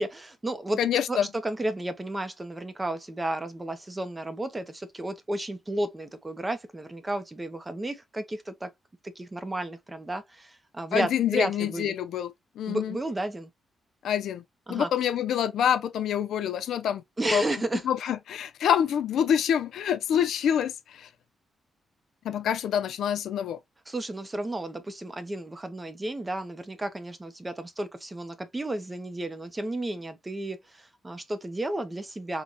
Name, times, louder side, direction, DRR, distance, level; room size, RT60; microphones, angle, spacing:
voice 1, 0.0-0.8 1.1-8.7 9.2-12.0 12.7-13.5 14.7-14.9 17.2-17.8 20.1-20.2 23.9-32.4, right 1 dB, 15° right, 0.5 m, -32 dB
voice 2, 0.8-1.3 10.9-12.3 12.6-13.0 14.0-14.4 14.7-17.0 17.3-17.4 17.8-21.1 22.2-23.6, left 9 dB, 85° left, 0.4 m, -26 dB
3.8 x 2.1 x 2.8 m
wide cardioid pair, 155°, 0 cm